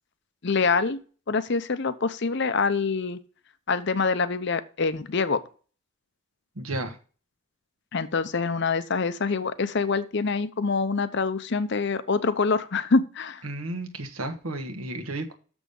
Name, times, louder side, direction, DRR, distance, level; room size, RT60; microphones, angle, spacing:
voice 1, 0.4-1.0 1.3-3.2 3.7-5.4 7.9-13.4, left 4 dB, 55° left, 13 dB, 0.7 m, -25 dB
voice 2, 6.6-7.0 13.4-15.4, right 2 dB, 85° right, 6 dB, 1.4 m, -33 dB
7.0 x 6.2 x 5.2 m, 0.38 s
head